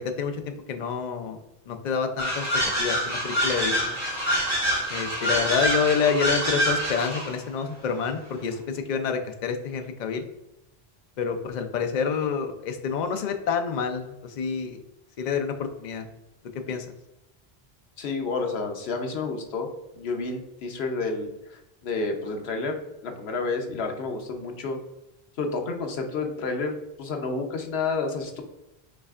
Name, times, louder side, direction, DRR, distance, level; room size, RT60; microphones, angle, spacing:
voice 1, 0.0-1.4 1.7-2.5 2.8-4.0 4.9-10.2 11.2-14.8 15.2-16.1 16.7-16.9, left 6 dB, 55° left, 6 dB, 0.6 m, -28 dB
sound 1, 2.2-7.3, equal, 15° right, 1.4 m, -26 dB
voice 2, 18.0-19.7 19.9-22.8 23.0-24.8 25.4-28.4, left 3 dB, 85° left, 4 dB, 1.0 m, -30 dB
5.6 x 3.3 x 2.4 m, 0.93 s
omnidirectional pair, 1.0 m